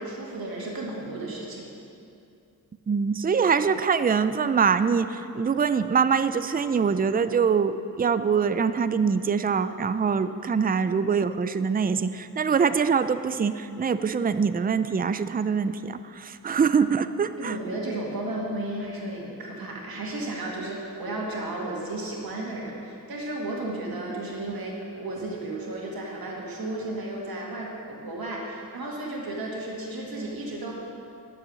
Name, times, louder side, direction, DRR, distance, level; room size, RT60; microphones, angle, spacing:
voice 1, 0.0-1.7 17.4-30.7, right 2 dB, 85° right, -2 dB, 2.1 m, -33 dB
voice 2, 2.9-17.6, right 6 dB, 25° right, 12 dB, 0.4 m, -24 dB
11.5 x 7.5 x 6.4 m, 2.6 s
cardioid pair, 65°, 35 cm